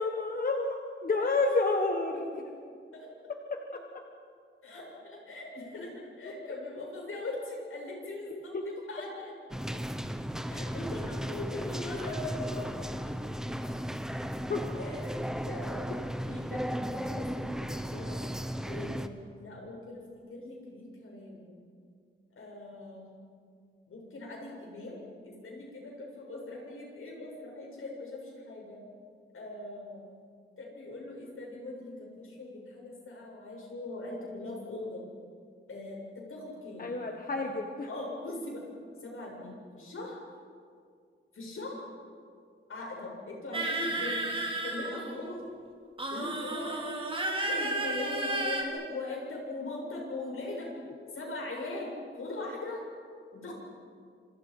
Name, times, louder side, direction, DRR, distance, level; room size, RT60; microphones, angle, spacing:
voice 1, 0.0-2.2 3.5-3.8 8.3-8.6 14.5-14.6 36.8-37.9, left 3 dB, 45° left, 3 dB, 1.5 m, -30 dB
voice 2, 4.6-9.3 10.5-13.3 13.6-13.7 14.8-15.1 15.4-18.2 18.6-21.6 22.4-23.1 23.9-28.8 29.3-30.1 30.6-35.0 35.7-36.9 37.9-38.7 39.0-40.2 41.3-41.9 42.7-44.3 44.6-45.4 46.1-47.0 47.3-50.7 51.1-52.9 53.3-53.5, left 2 dB, 80° left, -2 dB, 7.9 m, -41 dB
sound 1, 9.5-19.1, equal, 5° right, 1.0 m, -35 dB
sound 2, 43.5-45.4 46.0-48.6, right 2 dB, 25° right, 3.2 m, -32 dB
28.5 x 27.0 x 5.6 m, 2.2 s
wide cardioid pair, 180°, 21 cm